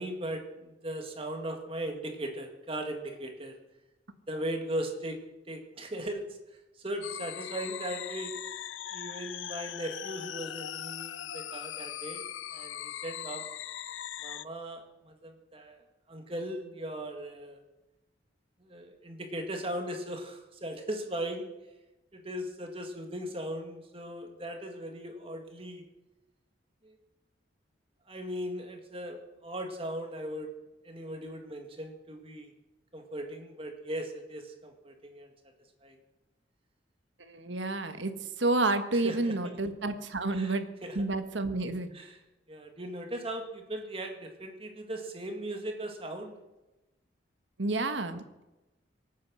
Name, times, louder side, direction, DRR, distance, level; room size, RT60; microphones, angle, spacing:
voice 1, 0.0-3.6 4.3-5.2 5.5-6.4 6.8-8.3 8.9-12.2 12.5-13.4 14.2-15.8 16.1-17.6 18.6-21.5 22.1-25.8 26.8-27.0 28.1-30.5 30.8-32.5 32.9-35.3 35.8-36.0 38.9-39.6 40.3-40.5 40.8-41.0 41.9-42.2 42.5-46.4, right 1 dB, 30° right, 4 dB, 2.0 m, -38 dB
sound 1, 7.0-14.5, left 11 dB, 80° left, 0.5 m, -40 dB
voice 2, 37.2-38.1 38.4-40.7 40.9-41.9 47.6-48.4, right 2 dB, 75° right, 9 dB, 1.5 m, -30 dB
24.0 x 9.3 x 6.3 m, 1.0 s
head